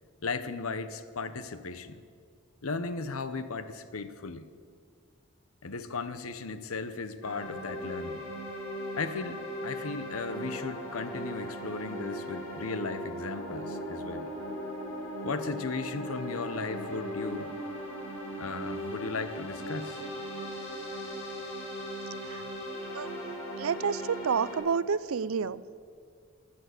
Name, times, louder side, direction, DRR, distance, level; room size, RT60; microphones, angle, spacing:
voice 1, 0.2-2.0 2.6-4.5 5.6-8.3 9.0-14.3 15.2-17.5 18.4-20.0, left 4 dB, 85° left, 12 dB, 0.9 m, -36 dB
sound 1, 7.2-24.6, equal, 70° left, 4.8 m, -38 dB
voice 2, 23.6-25.6, right 6 dB, 80° right, 18 dB, 0.5 m, -29 dB
14.0 x 9.9 x 8.2 m, 2.1 s
head